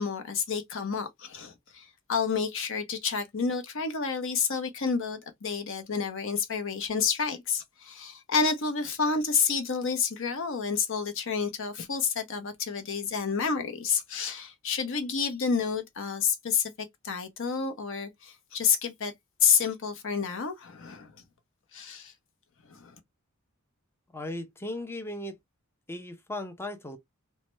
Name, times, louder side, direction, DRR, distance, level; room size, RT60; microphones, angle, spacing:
voice 1, 0.0-16.7 17.0-19.1 19.4-21.1 21.7-22.1 22.7-23.0, left 5 dB, 65° left, 0.8 m, -29 dB
voice 2, 24.1-25.4 25.9-27.0, left 1 dB, 10° left, 0.5 m, -37 dB
3.1 x 2.1 x 3.0 m
head